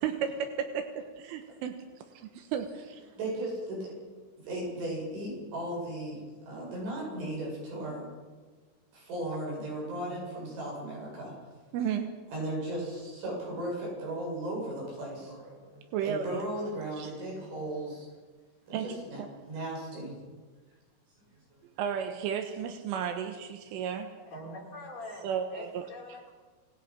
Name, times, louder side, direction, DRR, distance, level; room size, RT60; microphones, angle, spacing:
voice 1, 0.0-1.8 2.1-3.0 11.7-12.2 15.9-16.4 17.0-17.1 18.7-19.3 21.8-24.1 25.2-25.9, right 8 dB, 85° right, 6 dB, 3.7 m, -33 dB
voice 2, 3.2-3.9 4.5-6.2 6.5-8.0 8.9-11.3 12.3-18.1 18.7-19.2 19.5-20.2, right 1 dB, 65° right, -3 dB, 10.5 m, -36 dB
voice 3, 24.3-26.3, left 1 dB, 25° left, -5 dB, 6.9 m, -44 dB
26.0 x 19.5 x 5.9 m, 1.4 s
omnidirectional pair, 5.7 m